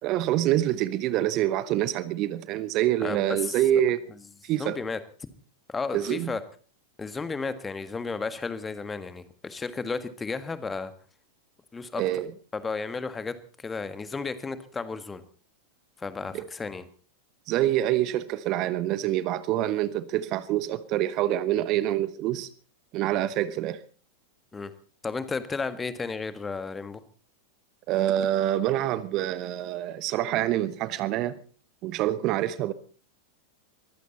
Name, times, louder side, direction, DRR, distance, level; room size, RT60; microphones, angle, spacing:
voice 1, 0.0-4.0 4.4-4.8 5.9-6.3 12.0-12.3 16.3-16.5 17.5-22.5 22.9-23.8 27.9-31.4 31.8-32.7, right 13 dB, 40° right, 1.0 m, -26 dB
voice 2, 3.0-3.6 4.6-5.0 5.7-6.4 7.0-10.9 11.7-12.0 12.5-15.2 16.0-16.9 24.5-24.7 25.0-27.0, left 4 dB, 15° left, 1.6 m, -33 dB
22.5 x 15.5 x 4.1 m
figure-of-eight pair, 90°, 0 cm